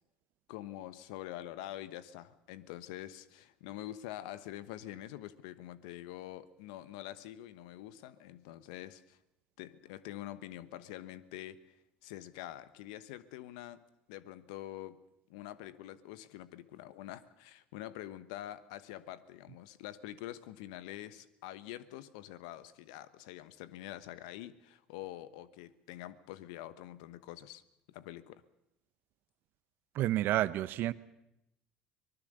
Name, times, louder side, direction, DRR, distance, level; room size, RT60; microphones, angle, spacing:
voice 1, 0.5-9.2 9.6-11.8 12.0-13.8 14.1-15.0 15.3-27.6 27.9-28.4, left 13 dB, 75° left, 14 dB, 1.1 m, -46 dB
voice 2, 29.9-30.9, right 14 dB, 60° right, 16 dB, 0.9 m, -29 dB
24.5 x 19.5 x 6.8 m, 0.84 s
hypercardioid pair, 70°, 4 cm